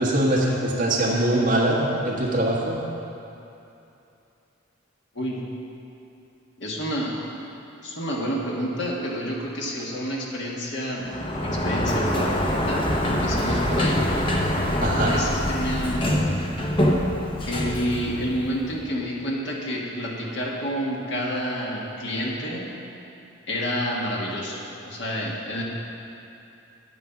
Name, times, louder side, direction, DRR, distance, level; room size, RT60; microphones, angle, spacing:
voice 1, 0.0-2.8 14.8-15.2, right 1 dB, 40° right, -5 dB, 1.5 m, -22 dB
voice 2, 6.6-7.2 7.8-11.1 11.4-14.1 14.8-16.1 17.5-22.7 23.5-25.6, equal, 55° left, -3 dB, 1.5 m, -29 dB
Sliding door, 11.0-18.8, left 1 dB, 25° left, 0.8 m, -25 dB
9.4 x 8.2 x 5.8 m, 2.8 s
head